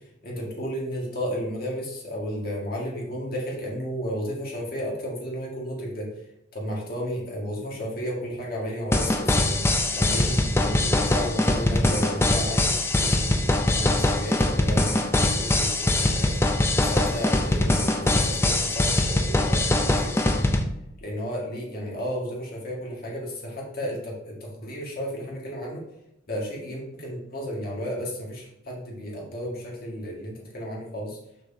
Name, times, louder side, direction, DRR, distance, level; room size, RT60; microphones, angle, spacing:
voice 1, 0.2-6.1 6.5-16.3 16.8-20.5 21.0-25.8 26.3-31.2, equal, 45° left, -3 dB, 1.8 m, -33 dB
sound 1, 8.9-20.6, left 1 dB, 10° left, 0.4 m, -22 dB
6.6 x 6.4 x 2.8 m, 0.84 s
head